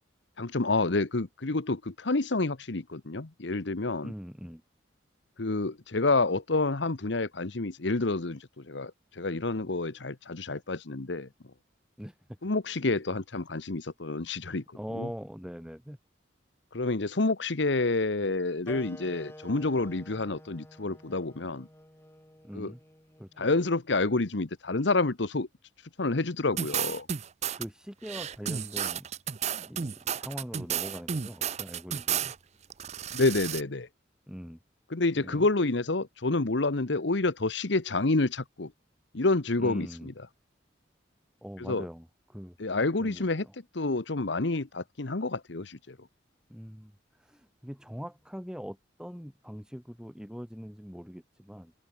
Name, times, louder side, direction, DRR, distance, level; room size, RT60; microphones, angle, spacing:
voice 1, 0.4-4.1 5.4-11.3 12.4-14.6 15.0-15.1 16.7-21.7 22.5-22.7 23.4-25.5 26.0-27.1 33.1-33.9 34.9-38.7 39.1-39.9 41.6-41.8 42.6-43.5 43.7-46.0, left 3 dB, 65° left, 1.1 m, -28 dB
voice 2, 4.0-4.6 12.0-12.2 14.7-16.0 22.4-22.8 23.2-23.5 27.5-29.1 29.6-32.3 34.3-34.6 35.1-35.5 39.6-40.1 41.4-42.6 43.0-43.5 46.5-51.7, equal, 5° right, 2.7 m, -42 dB
sound 1, 18.6-23.8, left 1 dB, 15° left, 5.7 m, -50 dB
sound 2, 26.6-27.7 28.0-32.4 32.7-33.6, right 8 dB, 35° right, 0.5 m, -32 dB
open air
head